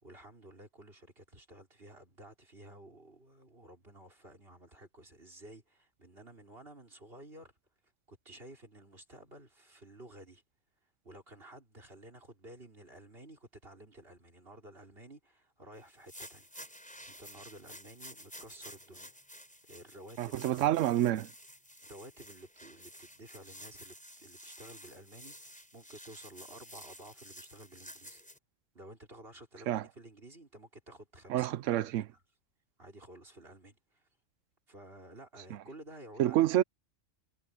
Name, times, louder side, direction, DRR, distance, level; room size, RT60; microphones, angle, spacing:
voice 1, 0.0-7.5 8.1-10.4 11.0-16.5 17.1-19.1 19.6-20.8 21.8-28.2 28.8-32.2 32.8-34.0 34.7-36.4, right 1 dB, 50° right, 5.1 m, -53 dB
sound 1, 15.9-28.4, equal, 5° left, 5.7 m, -52 dB
voice 2, 20.2-21.3 29.7-29.8 31.3-32.0 36.2-36.6, right 13 dB, 80° right, 0.9 m, -28 dB
omnidirectional pair, 1.3 m